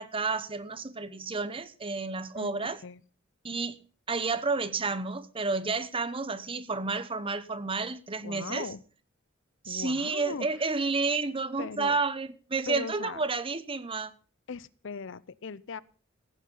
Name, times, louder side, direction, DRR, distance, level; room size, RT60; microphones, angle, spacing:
voice 1, 0.0-2.8 3.4-3.8 4.1-8.7 9.6-14.1, right 4 dB, 25° right, 0.9 m, -31 dB
voice 2, 2.3-3.0 8.2-8.8 9.6-10.5 11.6-12.0 12.7-13.2 14.5-15.8, left 5 dB, 65° left, 0.6 m, -39 dB
15.5 x 9.3 x 5.5 m
head